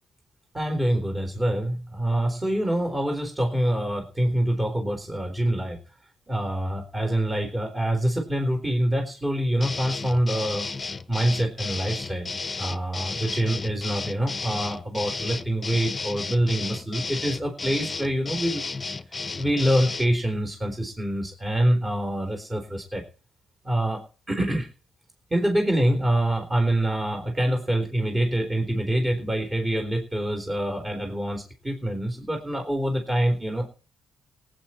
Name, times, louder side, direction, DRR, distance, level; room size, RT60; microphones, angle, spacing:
voice 1, 0.5-5.8 6.3-10.7 11.1-12.3 12.6-18.6 19.4-23.0 23.6-24.0 24.3-24.7 25.3-33.7, right 1 dB, 20° right, 3 dB, 3.9 m, -25 dB
sound 1, 9.6-20.1, left 4 dB, 25° left, 0.9 m, -33 dB
18.5 x 9.3 x 4.4 m, 0.37 s
cardioid pair, 90°, 0 cm